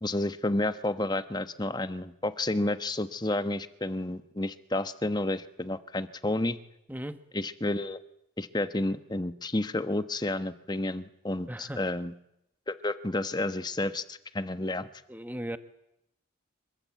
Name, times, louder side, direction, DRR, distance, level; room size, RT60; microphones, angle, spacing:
voice 1, 0.0-6.6 7.3-8.0 8.4-12.1 12.7-14.9, left 1 dB, 20° left, 11 dB, 1.1 m, -31 dB
voice 2, 6.9-7.2 11.5-11.9 15.1-15.6, right 1 dB, 10° right, 10 dB, 1.1 m, -37 dB
26.0 x 23.5 x 8.4 m, 0.83 s
head